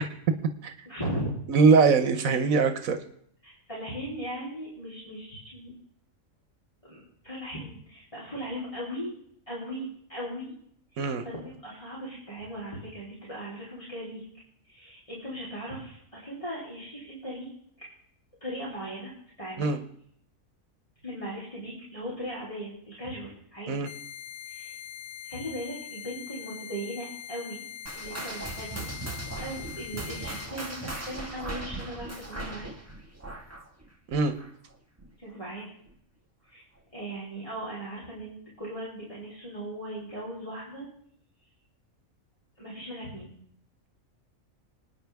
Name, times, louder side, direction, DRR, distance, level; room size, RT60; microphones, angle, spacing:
voice 1, 0.9-1.3 1.8-1.9 2.2-2.6 3.4-5.7 6.8-9.1 9.5-10.5 10.9-14.3 14.6-17.5 17.8-17.9 18.4-19.1 19.4-19.7 21.0-23.8 24.5-24.8 25.2-27.6 27.9-28.9 29.4-32.7 35.2-35.7 36.5-36.6 36.9-40.9 42.6-43.3, equal, 25° left, -7 dB, 3.5 m, -38 dB
voice 2, 1.5-3.0 11.0-11.2 19.6-19.8 23.7-23.9 34.1-34.3, right 4 dB, 85° right, 7 dB, 1.3 m, -22 dB
sound 1, 23.8-30.5, left 10 dB, 50° left, 0.8 m, -42 dB
sound 2, 27.9-34.7 35.0-35.3 35.9-36.0 36.8-36.9, right 2 dB, 10° right, 1.6 m, -38 dB
26.0 x 9.6 x 3.5 m, 0.68 s
omnidirectional pair, 1.4 m